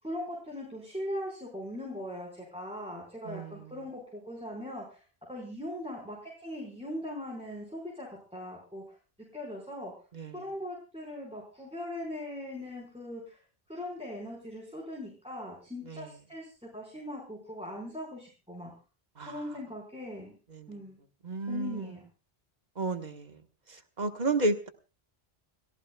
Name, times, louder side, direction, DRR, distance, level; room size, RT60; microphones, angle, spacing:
voice 1, 0.0-8.8 9.3-9.9 10.3-13.4 13.7-18.7 19.3-20.4 20.7-21.0 21.5-22.0, left 1 dB, 5° right, -3 dB, 4.8 m, -40 dB
voice 2, 3.2-3.7 10.1-10.4 15.9-16.1 19.2-19.4 20.5-20.8 21.2-22.0 22.8-23.4 23.7-24.7, right 2 dB, 45° right, 6 dB, 1.5 m, -32 dB
29.5 x 15.0 x 2.3 m, 0.34 s
omnidirectional pair, 1.0 m